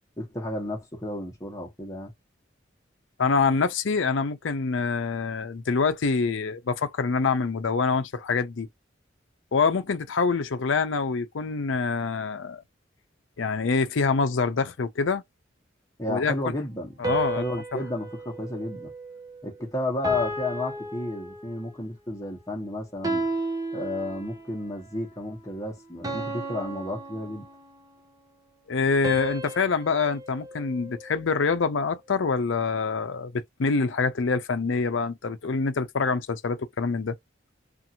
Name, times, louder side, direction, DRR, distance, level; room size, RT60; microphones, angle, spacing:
voice 1, 0.2-2.1 16.0-17.0 17.4-18.9 19.4-23.2 23.7-27.5, left 2 dB, 15° left, 1.0 m, -32 dB
voice 2, 3.2-8.7 9.5-12.6 13.4-15.2 16.1-16.5 17.0-17.4 28.7-37.1, left 4 dB, 80° left, 0.5 m, -25 dB
sound 1, 17.0-19.5 20.0-21.8 23.0-24.6 26.0-27.9 29.0-31.4, right 2 dB, 20° right, 0.6 m, -34 dB
2.6 x 2.5 x 2.8 m
head